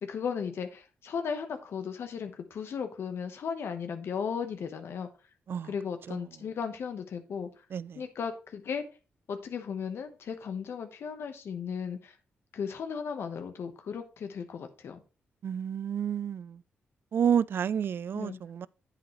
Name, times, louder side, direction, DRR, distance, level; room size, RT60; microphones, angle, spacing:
voice 1, 0.0-5.1 5.7-7.6 7.9-8.8 9.3-12.2 12.5-15.0 18.1-18.4, left 6 dB, 70° left, 1.0 m, -36 dB
voice 2, 7.7-8.0 15.4-16.6 17.1-18.7, right 8 dB, 60° right, 0.3 m, -30 dB
9.1 x 7.9 x 3.1 m
cardioid pair, 75°, 4 cm